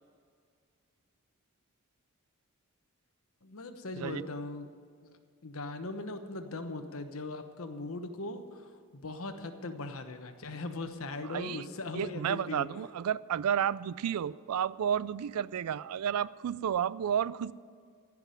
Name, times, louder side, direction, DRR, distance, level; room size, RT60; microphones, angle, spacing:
voice 1, 3.4-4.7 5.0-5.1 5.4-12.7, left 2 dB, 70° left, 7 dB, 1.1 m, -39 dB
voice 2, 11.3-11.6 11.9-17.5, right 9 dB, 90° right, 20 dB, 0.3 m, -31 dB
15.5 x 6.1 x 9.8 m, 2.1 s
head